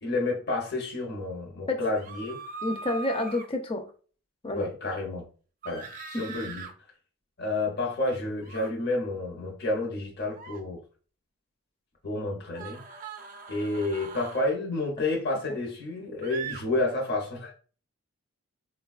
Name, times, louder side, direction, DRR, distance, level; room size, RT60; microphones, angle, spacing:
voice 1, 0.0-2.4 4.5-5.3 5.6-5.9 6.2-6.7 7.4-10.8 12.0-12.8 13.5-17.5, left 2 dB, 50° left, 0.7 m, -30 dB
sound 1, 1.9-3.5 5.6-6.7 8.4-8.7 10.3-10.6 12.5-14.5 16.2-16.6, right 4 dB, 40° right, 0.4 m, -40 dB
voice 2, 2.6-3.8 4.4-4.7 6.1-6.2, left 2 dB, 25° left, 0.5 m, -29 dB
3.9 x 2.2 x 2.4 m
head